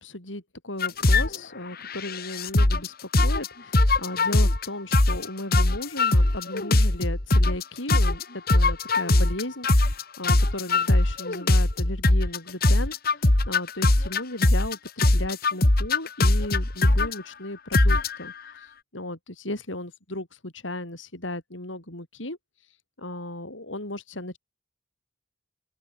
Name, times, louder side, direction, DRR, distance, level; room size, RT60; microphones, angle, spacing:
voice 1, 0.0-2.9 3.2-18.6 18.9-22.4 23.0-24.4, left 1 dB, 80° left, 6.6 m, -35 dB
sound 1, 0.8-1.4 1.9-2.9 3.1-3.5 3.7-4.7 4.9-5.3 5.5-7.6 7.9-12.4 12.6-14.7 15.0-17.1 17.7-18.3, left 2 dB, 50° left, 1.9 m, -20 dB
open air
head